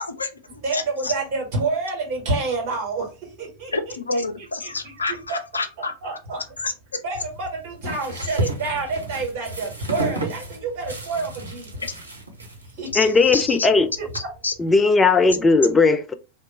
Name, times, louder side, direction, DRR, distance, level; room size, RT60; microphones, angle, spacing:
voice 1, 0.0-1.1 3.7-5.9 6.6-7.0 11.8-11.9 12.9-13.6 14.1-14.5, left 3 dB, 75° left, 0.5 m, -29 dB
voice 2, 0.6-3.0 3.4-4.9 5.3-5.4 5.8-6.4 7.0-11.7 12.8-13.1 13.5-14.1, right 3 dB, 45° right, 1.8 m, -28 dB
sound 1, 7.1-14.2, right 1 dB, 80° right, 0.7 m, -33 dB
voice 3, 13.0-13.9 14.6-16.1, left 4 dB, 15° left, 0.4 m, -17 dB
2.9 x 2.2 x 3.9 m
figure-of-eight pair, 90°, 0 cm